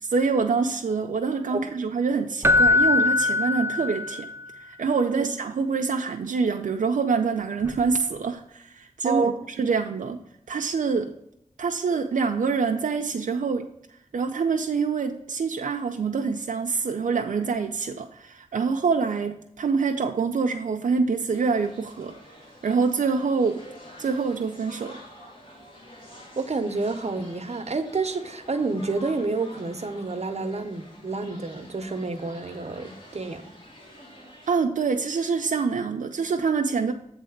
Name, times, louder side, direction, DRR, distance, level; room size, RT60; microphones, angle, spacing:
voice 1, 0.0-4.3 4.6-10.2 10.5-11.1 11.6-13.7 14.1-22.2 22.6-23.6 24.0-25.0 34.5-36.9, right 5 dB, 90° right, 3 dB, 0.5 m, -25 dB
Keyboard (musical), 2.4-4.4 7.6-7.8, left 3 dB, 20° right, 0.4 m, -21 dB
voice 2, 9.0-9.4 26.4-33.4, right 3 dB, 55° right, 7 dB, 0.9 m, -29 dB
sound 1, 21.3-34.5, left 1 dB, 40° left, 2.2 m, -48 dB
8.4 x 3.4 x 6.4 m, 0.78 s
wide cardioid pair, 60°, 13 cm